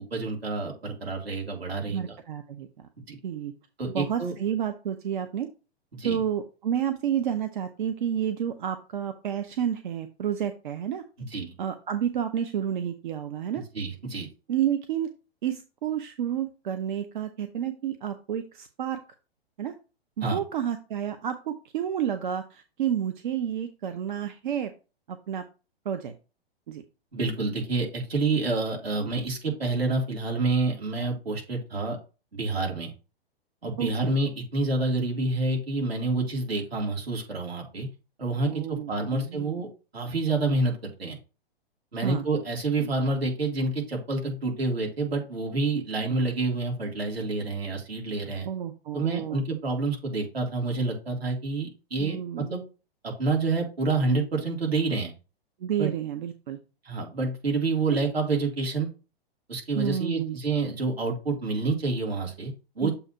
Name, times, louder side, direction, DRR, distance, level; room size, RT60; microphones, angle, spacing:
voice 1, 0.0-2.2 3.1-3.2 3.8-4.3 5.9-6.2 11.2-11.5 13.5-14.3 20.2-20.4 27.1-32.0 32.3-32.9 33.6-37.9 38.2-39.7 39.9-40.7 41.0-41.2 41.9-48.5 48.9-52.6 53.0-55.1 55.8-55.9 56.8-58.9 59.5-62.9, right 3 dB, 75° right, 0 dB, 2.4 m, -28 dB
voice 2, 1.9-2.9 3.2-3.5 3.9-5.5 6.0-11.0 11.6-13.6 14.5-15.1 15.4-19.0 19.6-19.7 20.2-24.7 25.1-25.4 25.8-26.1 26.7-26.8 33.8-34.1 38.4-39.6 42.0-42.3 42.8-42.9 48.4-49.4 52.0-52.5 55.6-56.6 57.9-58.0 59.8-60.4 62.8-62.9, right 9 dB, 50° right, 8 dB, 0.7 m, -30 dB
7.1 x 2.7 x 5.5 m, 0.32 s
figure-of-eight pair, 115°, 31 cm